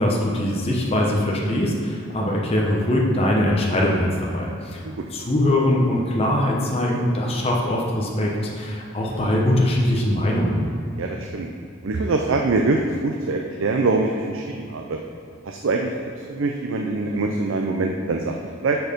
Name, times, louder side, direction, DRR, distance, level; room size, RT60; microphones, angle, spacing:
voice 1, 0.0-4.8 5.1-10.7, left 1 dB, 30° left, -3 dB, 0.9 m, -22 dB
voice 2, 11.0-11.5 11.8-15.0 15.4-18.8, right 3 dB, 80° right, 2 dB, 0.5 m, -24 dB
7.9 x 4.6 x 5.2 m, 2.4 s
head